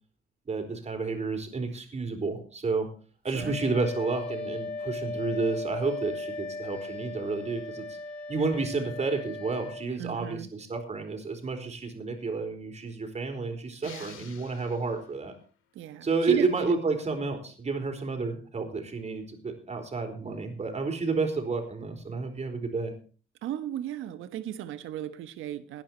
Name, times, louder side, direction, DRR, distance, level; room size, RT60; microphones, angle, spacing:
voice 1, 0.5-2.9 3.2-8.0 8.3-15.3 16.0-22.9, right 4 dB, 35° right, 4 dB, 4.4 m, -30 dB
Wind instrument woodwind instrument, 3.3-9.9, left 2 dB, 5° left, 4.3 m, -37 dB
voice 2, 3.3-3.6 10.0-10.5 13.8-14.2 15.7-16.7 23.4-25.8, right 11 dB, 85° right, 12 dB, 1.3 m, -36 dB
sound 1, 13.8-15.4, left 8 dB, 85° left, 2.5 m, -50 dB
17.5 x 10.0 x 4.5 m, 0.38 s
cardioid pair, 90°, 20 cm